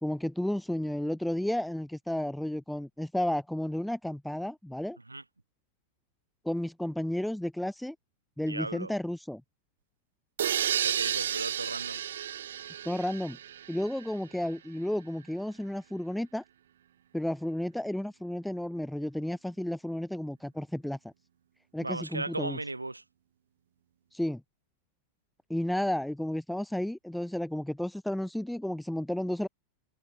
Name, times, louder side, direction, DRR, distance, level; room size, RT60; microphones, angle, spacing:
voice 1, 0.0-5.0 6.4-7.9 8.4-9.4 12.8-13.4 13.7-16.4 17.1-21.1 21.7-22.6 24.1-24.4 25.5-29.5, left 1 dB, ahead, 1.2 m, -32 dB
voice 2, 8.5-8.9 10.7-12.0 21.8-23.0, right 2 dB, 85° right, 4.6 m, -36 dB
sound 1, 10.4-14.1, right 10 dB, 60° right, 0.4 m, -32 dB
figure-of-eight pair, 90°, 0 cm